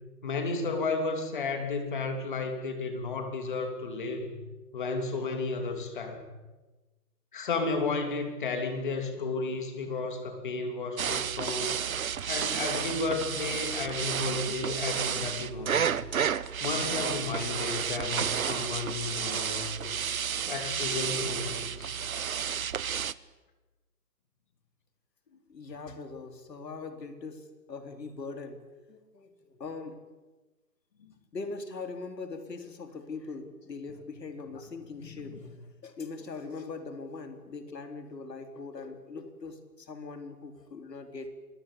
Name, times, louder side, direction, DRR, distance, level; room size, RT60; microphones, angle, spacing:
voice 1, 0.2-4.4 4.7-6.2 7.3-11.8 12.3-15.9 16.6-20.0 20.5-22.0 31.0-31.1 35.2-35.4, left 3 dB, 30° left, 6 dB, 3.0 m, -33 dB
sound 1, 11.0-23.1, right 8 dB, 60° right, 0.9 m, -31 dB
voice 2, 25.5-28.6 28.9-30.0 31.3-35.6 35.8-41.3, left 4 dB, 80° left, 6 dB, 4.0 m, -41 dB
26.5 x 21.0 x 8.3 m, 1.2 s
hypercardioid pair, 180°, 49 cm